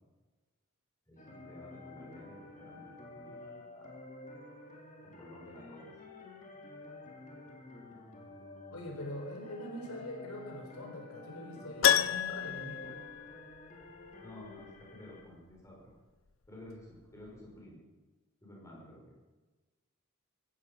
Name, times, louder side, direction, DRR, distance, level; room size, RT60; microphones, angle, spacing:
voice 1, 1.1-2.9 3.1-3.4 3.7-3.9 5.0-5.9 14.2-15.9 16.5-17.8 18.4-19.1, left 1 dB, 15° left, -4 dB, 5.7 m, -52 dB
sound 1, 1.2-15.2, left 2 dB, 35° left, 2.7 m, -50 dB
voice 2, 8.7-12.9, left 1 dB, 85° left, 1 dB, 4.5 m, -43 dB
Keyboard (musical), 11.8-13.9 14.1-14.2 16.9-17.0 17.3-17.4, left 9 dB, 65° left, 0.6 m, -30 dB
16.5 x 15.0 x 5.4 m, 1.2 s
head